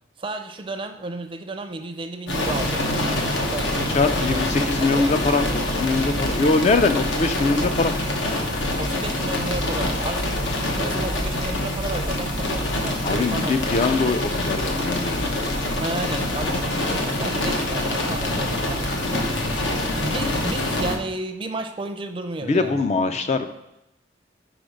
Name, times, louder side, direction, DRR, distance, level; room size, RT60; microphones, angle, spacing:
voice 1, 0.2-5.1 8.8-13.6 15.8-19.3 20.0-23.2, right 2 dB, 30° right, 7 dB, 0.5 m, -33 dB
sound 1, 2.3-21.0, left 1 dB, 80° left, 1.0 m, -25 dB
voice 2, 3.9-7.9 13.0-15.4 22.4-23.5, left 3 dB, 35° left, 8 dB, 0.4 m, -22 dB
4.9 x 4.9 x 5.2 m, 0.89 s
head